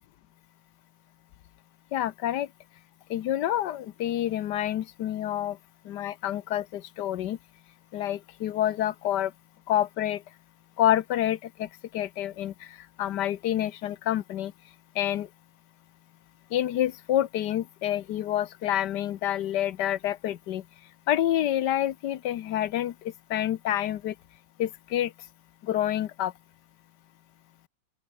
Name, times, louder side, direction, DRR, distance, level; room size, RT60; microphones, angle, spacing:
voice 1, 1.9-2.5 3.1-5.6 5.8-7.4 7.9-9.3 9.7-10.2 10.8-11.7 11.9-12.5 13.0-14.5 15.0-15.3 16.5-20.6 21.1-22.9 23.3-24.1 24.6-25.1 25.6-26.3, left 12 dB, 70° left, 1.4 m, -28 dB
open air
omnidirectional pair, 2.0 m